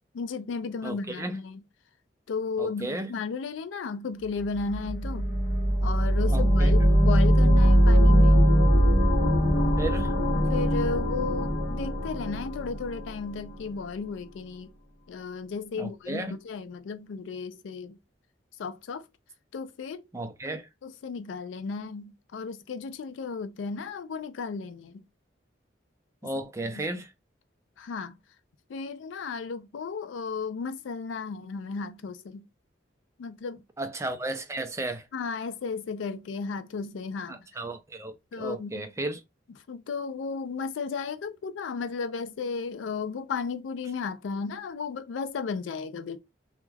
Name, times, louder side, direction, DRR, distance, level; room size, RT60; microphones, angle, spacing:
voice 1, 0.1-1.6 2.3-5.3 5.8-8.4 10.4-14.7 15.1-18.0 18.6-19.0 19.5-20.0 20.8-25.0 26.2-26.3 26.8-26.9 27.8-28.2 28.7-32.5 33.2-33.6 35.1-37.4 38.3-38.9 39.7-46.2, left 4 dB, 85° left, 0.4 m, -34 dB
voice 2, 0.8-1.4 2.6-3.1 6.3-6.7 9.8-10.2 15.7-16.3 20.1-20.7 26.2-27.1 33.8-35.1 37.3-39.2, right 2 dB, 15° right, 0.4 m, -34 dB
sound 1, 4.5-13.4, equal, 55° left, 0.8 m, -21 dB
2.3 x 2.2 x 3.2 m
head